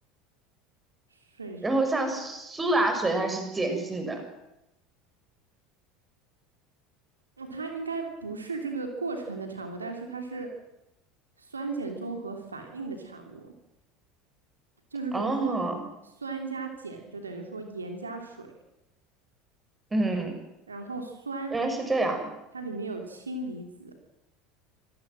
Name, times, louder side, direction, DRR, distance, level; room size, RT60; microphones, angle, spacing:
voice 1, 1.1-1.6 7.4-10.5 11.4-13.5 14.9-15.6 16.2-18.5 20.7-21.6 22.5-23.9, right 3 dB, 80° right, 4 dB, 3.1 m, -36 dB
voice 2, 1.6-4.2 15.1-15.8 19.9-20.3 21.5-22.3, right 2 dB, 15° right, 5 dB, 6.5 m, -27 dB
26.5 x 17.5 x 7.6 m, 0.92 s
figure-of-eight pair, 70°, 0 cm